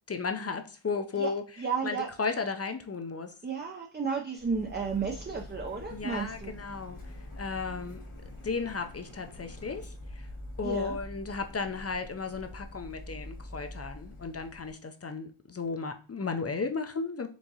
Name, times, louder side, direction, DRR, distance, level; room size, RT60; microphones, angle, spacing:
voice 1, 0.1-1.4 1.8-3.3 5.9-7.0 7.4-8.0 8.4-10.3 10.6-17.3, left 4 dB, 30° left, 7 dB, 0.5 m, -34 dB
voice 2, 1.6-2.1 3.4-6.5 10.6-11.0, right 5 dB, 25° right, 3 dB, 0.4 m, -33 dB
Printer, 4.4-14.7, left 1 dB, 85° left, 1.4 m, -45 dB
4.5 x 3.7 x 2.8 m, 0.38 s
wide cardioid pair, 90°, 49 cm